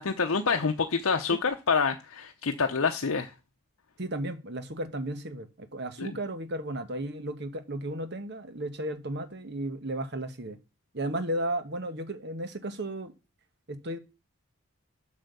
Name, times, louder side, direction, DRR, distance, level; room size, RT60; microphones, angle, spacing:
voice 1, 0.0-3.3 6.0-6.1, left 5 dB, 70° left, 0.7 m, -27 dB
voice 2, 4.0-10.6 10.9-13.1 13.7-14.0, right 1 dB, 50° right, 1.1 m, -34 dB
8.0 x 5.6 x 6.8 m
head